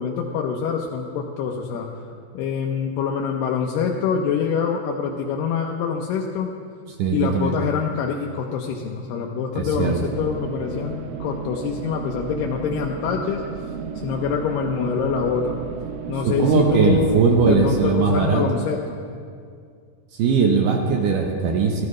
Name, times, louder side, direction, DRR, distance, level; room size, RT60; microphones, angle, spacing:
voice 1, 0.0-1.9 2.3-6.5 7.1-13.4 14.0-15.6 16.1-19.0, left 6 dB, 75° left, 0 dB, 2.3 m, -25 dB
voice 2, 7.0-7.5 9.5-10.0 16.0-18.5 20.1-21.9, right 5 dB, 70° right, 1 dB, 2.3 m, -20 dB
sound 1, 9.8-17.9, right 7 dB, 90° right, 1.6 m, -33 dB
15.5 x 13.0 x 3.2 m, 2.3 s
omnidirectional pair, 4.1 m